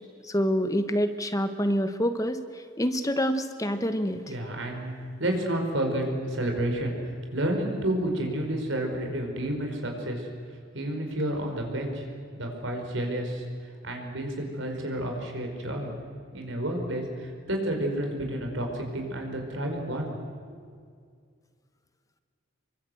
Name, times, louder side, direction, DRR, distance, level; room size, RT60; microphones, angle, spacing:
voice 1, 0.3-2.4 2.8-4.2, equal, 15° left, 9 dB, 1.1 m, -26 dB
voice 2, 4.3-4.9 5.2-6.9 7.3-10.3 10.7-12.1 12.3-13.4 13.8-15.9 16.3-20.2, right 1 dB, 75° right, 3 dB, 5.0 m, -30 dB
26.0 x 23.5 x 7.9 m, 2.1 s
head